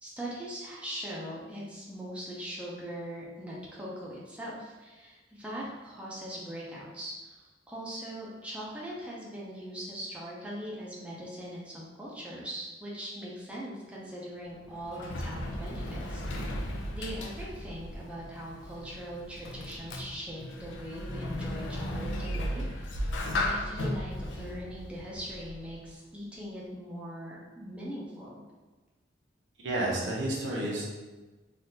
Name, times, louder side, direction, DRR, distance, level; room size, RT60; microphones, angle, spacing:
voice 1, 0.0-23.1 23.4-28.4, equal, 5° right, -6 dB, 0.5 m, -41 dB
Sliding door, 14.4-25.9, left 1 dB, 85° left, 0.4 m, -36 dB
voice 2, 29.6-30.9, right 1 dB, 75° right, -4 dB, 0.8 m, -30 dB
3.4 x 2.4 x 2.7 m, 1.2 s
head